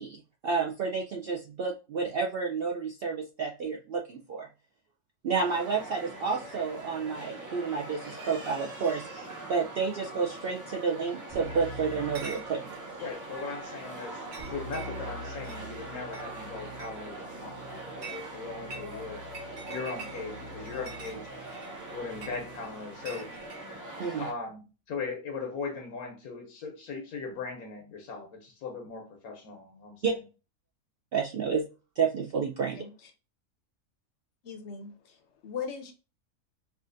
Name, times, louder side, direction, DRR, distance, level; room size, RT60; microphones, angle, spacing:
voice 1, 0.0-4.5 5.2-12.8 24.0-24.2 30.0-30.1 31.1-31.7 32.0-32.8, right 5 dB, 70° right, 0.5 m, -30 dB
sound 1, 5.3-24.3, right 2 dB, 15° right, 0.7 m, -43 dB
Keyboard (musical), 11.3-13.0 14.4-22.8, equal, 40° right, 1.1 m, -46 dB
Chatter / Chink clink, 12.0-23.7, right 4 dB, 90° right, 1.5 m, -48 dB
voice 2, 13.0-14.2 14.5-19.2 19.7-21.3 21.9-23.3 24.2-30.1, left 4 dB, 90° left, 1.3 m, -39 dB
voice 3, 32.8-33.1 34.4-35.9, left 6 dB, 60° left, 0.8 m, -39 dB
4.8 x 2.4 x 2.5 m
omnidirectional pair, 1.5 m